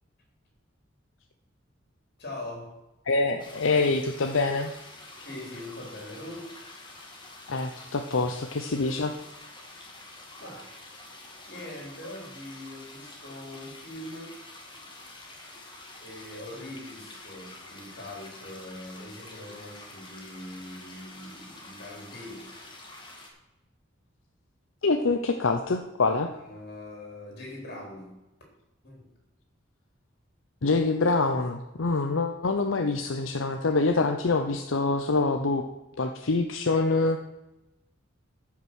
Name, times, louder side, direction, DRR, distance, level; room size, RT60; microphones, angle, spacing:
voice 1, 2.2-2.7 5.2-6.5 8.2-8.3 10.4-10.8 11.5-14.4 16.0-22.5 26.5-28.2 28.8-29.1, left 1 dB, 55° left, 0 dB, 3.9 m, -42 dB
voice 2, 3.1-4.7 7.5-9.1 24.8-26.3 30.6-35.6 35.9-37.2, left 3 dB, 85° left, 5 dB, 0.7 m, -25 dB
sound 1, 3.4-23.3, left 2 dB, 25° left, 2.0 m, -47 dB
13.5 x 5.9 x 6.3 m, 0.98 s
head